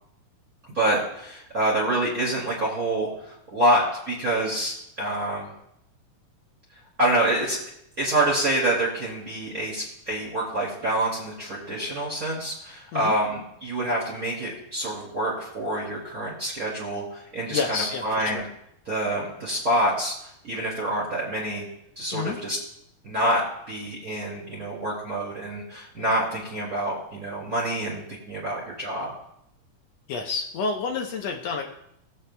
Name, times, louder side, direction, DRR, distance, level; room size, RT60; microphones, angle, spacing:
voice 1, 0.7-5.5 7.0-7.6 8.0-18.5 18.9-20.1 20.4-21.6 22.0-22.6 23.0-29.1, right 1 dB, 30° right, -4 dB, 2.1 m, -27 dB
voice 2, 17.5-18.1 18.3-18.4 22.1-22.4 30.1-31.7, left 4 dB, 75° left, 2 dB, 1.6 m, -29 dB
19.0 x 7.9 x 2.2 m, 0.77 s
omnidirectional pair, 3.9 m